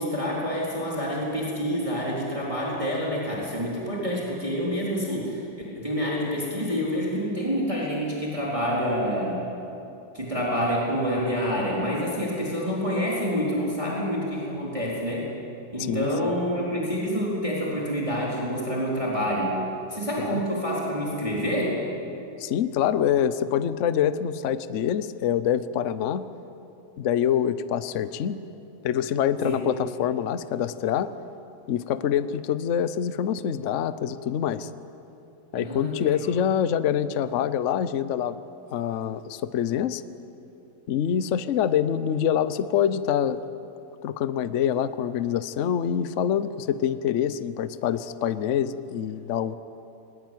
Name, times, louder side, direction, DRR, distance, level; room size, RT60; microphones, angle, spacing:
voice 1, 0.0-5.4 5.7-9.4 10.1-15.2 15.7-19.6 19.9-21.8 29.4-29.6 35.5-36.1, equal, 15° right, -6 dB, 4.0 m, -27 dB
voice 2, 15.8-16.4 20.2-20.4 22.4-26.3 27.0-28.4 28.8-31.1 31.7-34.7 35.5-38.4 38.7-40.0 40.9-43.4 44.0-49.6, left 9 dB, 60° left, 13 dB, 0.7 m, -25 dB
21.5 x 20.0 x 9.2 m, 2.9 s
omnidirectional pair, 2.3 m